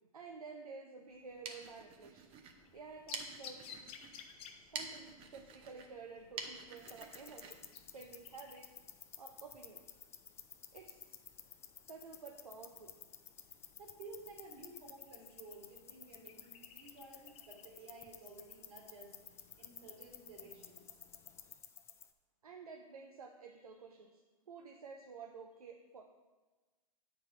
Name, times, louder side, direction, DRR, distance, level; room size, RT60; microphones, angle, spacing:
voice 1, 0.1-2.3 2.7-3.6 4.7-7.6 7.9-8.8 9.2-9.8 10.7-11.2 11.8-13.0 22.4-24.2 24.5-26.0, right 4 dB, 85° right, 3 dB, 0.7 m, -51 dB
sound 1, 1.1-8.6, right 5 dB, 30° right, 0.8 m, -49 dB
sound 2, 2.6-21.6, left 7 dB, 30° left, 0.7 m, -60 dB
sound 3, 6.8-22.1, left 8 dB, 15° left, 0.3 m, -55 dB
voice 2, 13.8-21.0, right 3 dB, 60° right, -1 dB, 2.8 m, -54 dB
8.1 x 4.7 x 5.0 m, 1.2 s
hypercardioid pair, 110°, 18 cm